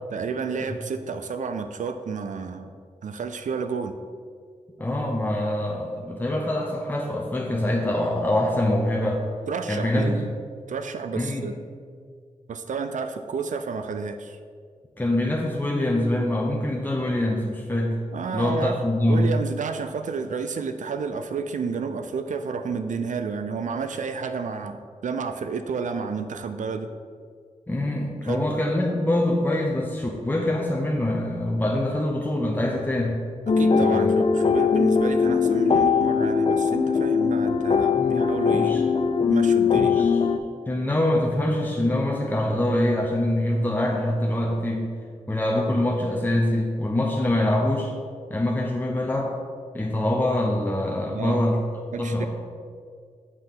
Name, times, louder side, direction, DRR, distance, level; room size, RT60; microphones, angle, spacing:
voice 1, 0.1-2.7 3.0-4.0 9.5-10.3 10.7-11.5 12.5-14.4 18.1-18.8 19.1-26.9 28.2-28.5 33.5-38.8 39.3-40.1 51.1-51.4 51.9-52.3, right 5 dB, 70° right, 8 dB, 0.4 m, -31 dB
voice 2, 4.8-9.2 9.7-10.2 11.1-11.5 15.0-18.0 18.3-19.3 27.7-33.2 33.8-34.1 38.0-38.8 39.7-40.2 40.7-44.9 45.3-47.9 48.3-49.3 49.7-51.6 52.0-52.3, left 1 dB, 15° left, -1 dB, 0.7 m, -24 dB
sound 1, 33.5-40.4, left 5 dB, 45° left, 0.4 m, -21 dB
7.3 x 3.2 x 5.8 m, 2.1 s
cardioid pair, 60°, 13 cm